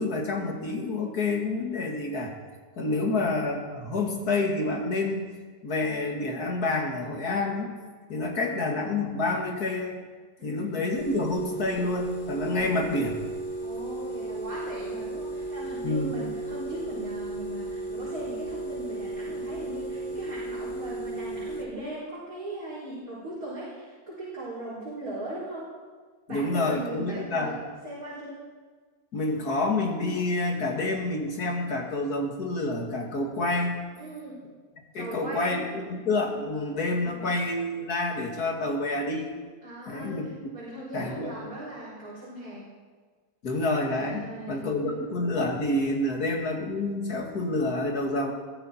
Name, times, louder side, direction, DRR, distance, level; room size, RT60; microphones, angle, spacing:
voice 1, 0.0-2.3 2.8-5.3 5.6-7.7 8.1-10.0 10.4-13.1 15.8-16.1 26.3-27.6 29.1-33.8 34.9-39.3 39.9-40.3 40.9-41.3 43.4-48.3, left 2 dB, 85° left, 1 dB, 2.7 m, -28 dB
voice 2, 2.8-3.2 8.3-8.7 10.4-11.0 12.5-12.9 13.6-25.7 26.3-27.5 27.8-28.4 34.0-34.4 35.0-35.6 37.0-37.3 39.6-42.6 44.0-45.0, right 1 dB, 70° right, -9 dB, 4.8 m, -39 dB
sound 1, 10.9-21.7, right 2 dB, 60° left, 2.2 m, -35 dB
21.5 x 13.5 x 4.4 m, 1.5 s
omnidirectional pair, 1.6 m